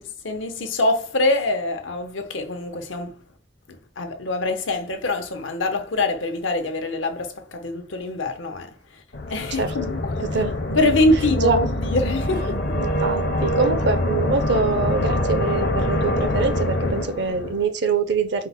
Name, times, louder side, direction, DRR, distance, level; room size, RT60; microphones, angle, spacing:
voice 1, 0.0-3.2 3.7-9.0 9.3-10.2 10.8-12.8, left 2 dB, 90° left, 0.8 m, -24 dB
sound 1, 9.1-17.6, left 1 dB, 60° left, 0.7 m, -24 dB
voice 2, 12.7-18.5, right 4 dB, 65° right, 0.6 m, -24 dB
4.6 x 2.1 x 4.2 m
head